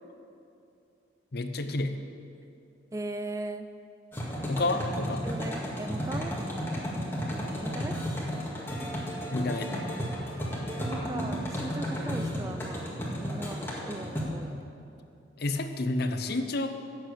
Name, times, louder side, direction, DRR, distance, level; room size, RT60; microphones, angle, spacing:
voice 1, 1.3-1.9 4.5-5.2 9.3-9.7 15.4-16.7, left 2 dB, 55° left, 8 dB, 0.7 m, -29 dB
voice 2, 2.9-3.7 5.2-6.3 7.6-8.0 10.6-12.9 13.2-14.6, right 2 dB, 15° right, 9 dB, 0.3 m, -38 dB
sound 1, 4.1-14.2, equal, 10° left, 1.9 m, -33 dB
12.0 x 7.5 x 8.6 m, 2.7 s
head